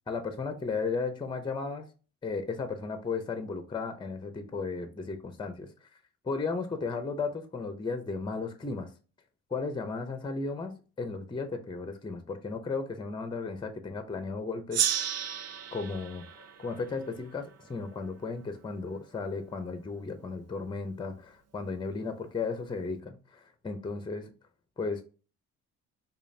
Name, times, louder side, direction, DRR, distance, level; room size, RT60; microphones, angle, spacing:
voice 1, 0.1-1.8 2.2-5.9 6.2-8.9 9.5-14.9 15.7-24.3 24.8-25.0, left 4 dB, 15° left, 0.6 m, -35 dB
Gong, 14.7-17.9, right 9 dB, 55° right, 0.5 m, -33 dB
4.9 x 2.4 x 2.6 m
cardioid pair, 90°, 30 cm